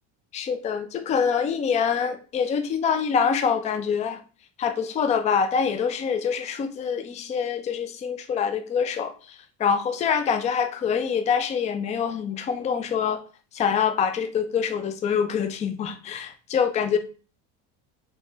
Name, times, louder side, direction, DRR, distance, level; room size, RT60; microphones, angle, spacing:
voice 1, 0.3-4.2 4.6-13.2 13.5-17.0, left 7 dB, 20° left, 8 dB, 0.3 m, -25 dB
3.2 x 2.8 x 3.2 m, 0.37 s
supercardioid pair, 110°, 37 cm